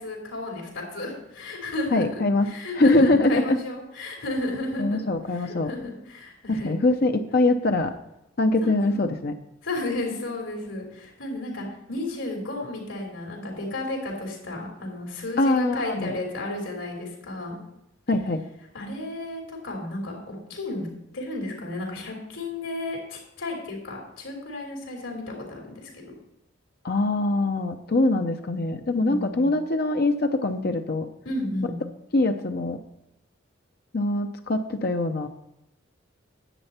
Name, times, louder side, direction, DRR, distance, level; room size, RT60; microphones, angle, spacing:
voice 1, 0.0-5.0 5.3-6.8 8.6-9.0 9.6-17.6 18.7-20.9 21.1-26.1 29.1-29.5 31.2-31.8, left 2 dB, 80° left, 0 dB, 3.2 m, -33 dB
voice 2, 1.9-2.5 2.8-3.4 4.8-5.7 6.5-7.9 8.4-9.4 15.4-16.1 18.1-18.4 26.8-31.1 32.1-32.8 33.9-35.3, left 2 dB, 55° left, 6 dB, 0.7 m, -23 dB
10.0 x 8.0 x 4.3 m, 0.86 s
head